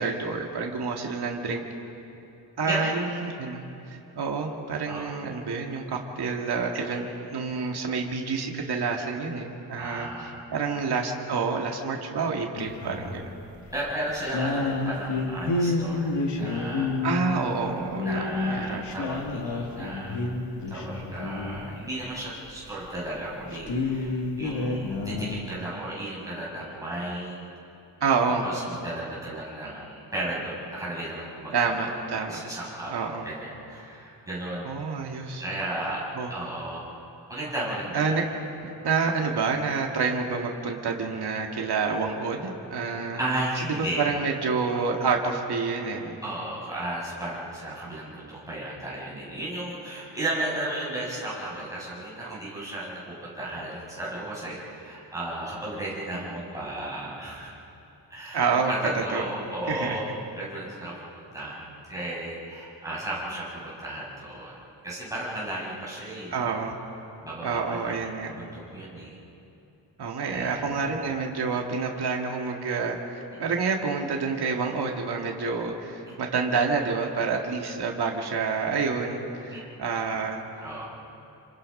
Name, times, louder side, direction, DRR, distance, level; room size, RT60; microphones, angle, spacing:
voice 1, 0.0-1.6 2.6-3.6 4.2-7.0 7.3-10.1 10.5-13.3 17.0-18.9 28.0-28.5 31.5-32.4 32.9-33.3 34.6-35.4 36.2-36.3 37.9-38.2 38.6-43.2 44.0-46.2 52.2-52.4 58.3-58.7 59.1-59.3 59.7-60.0 66.3-66.8 67.4-68.3 70.0-80.4, right 5 dB, 60° right, 1 dB, 2.1 m, -28 dB
voice 2, 9.8-10.4 13.7-17.0 18.0-20.2 20.7-27.5 28.4-32.0 32.3-32.9 33.2-34.7 35.4-36.9 37.3-38.2 43.2-44.1 46.2-57.5 58.1-58.4 58.7-60.0 60.3-64.5 64.8-66.3 67.2-69.2 70.3-70.7 79.5-79.6 80.6-80.9, right 1 dB, 10° right, -7 dB, 7.3 m, -34 dB
sound 1, 12.6-13.2 13.6-13.8 14.2-21.7 22.5-22.6 22.9-23.0 23.2-25.4, left 3 dB, 70° left, 2.6 m, -29 dB
28.5 x 26.0 x 5.5 m, 2.7 s
wide cardioid pair, 175°, 43 cm